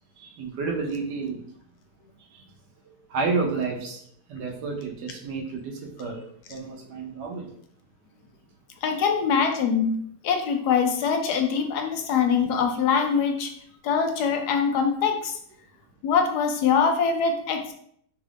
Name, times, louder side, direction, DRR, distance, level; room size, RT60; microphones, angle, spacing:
voice 1, 0.2-1.4 3.1-4.0 4.3-6.2 6.5-7.5, right 4 dB, 75° right, 1 dB, 1.3 m, -30 dB
voice 2, 8.8-10.0 10.2-13.5 13.8-15.3 16.0-17.7, left 6 dB, 75° left, 5 dB, 1.1 m, -23 dB
3.6 x 2.4 x 3.3 m, 0.65 s
omnidirectional pair, 1.8 m